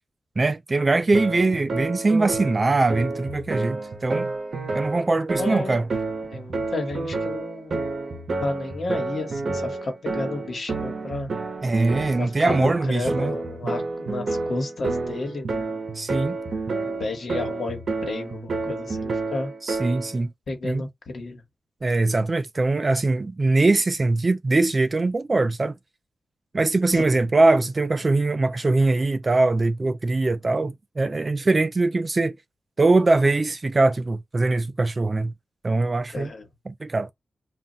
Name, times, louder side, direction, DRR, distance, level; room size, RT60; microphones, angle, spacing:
voice 1, 0.4-4.3 4.7-5.9 11.6-13.3 16.0-16.4 19.6-20.3 20.6-20.8 21.8-25.7 26.5-32.4 32.8-35.3 35.6-36.3 36.7-37.1, right 2 dB, 30° right, 0.3 m, -22 dB
sound 1, 1.1-20.2, right 3 dB, 55° right, 0.7 m, -30 dB
voice 2, 5.4-5.8 6.3-7.8 8.4-11.3 12.2-15.8 16.8-19.5 20.5-21.4 26.9-27.1 36.1-36.4, left 2 dB, 60° left, 1.2 m, -32 dB
2.4 x 2.1 x 3.8 m
wide cardioid pair, 110°, 0 cm